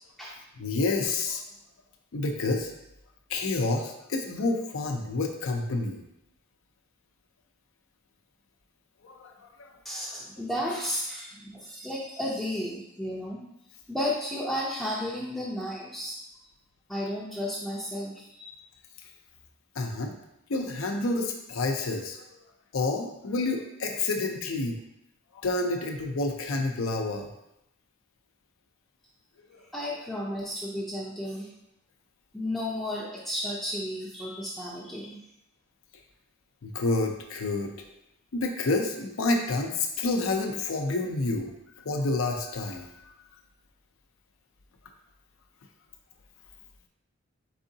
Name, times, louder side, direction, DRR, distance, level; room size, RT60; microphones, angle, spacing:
voice 1, 0.6-1.4 2.1-2.7 3.3-6.0 9.0-9.7 19.8-20.1 20.5-22.2 22.7-24.8 25.3-27.3 29.5-29.6 36.6-37.7 38.3-41.5 41.8-42.9, left 2 dB, 75° left, 3 dB, 0.5 m, -29 dB
voice 2, 9.8-13.4 13.9-16.2 16.9-18.5 29.7-31.5 32.3-35.2, left 1 dB, ahead, -7 dB, 0.5 m, -33 dB
4.8 x 3.6 x 2.7 m, 0.84 s
head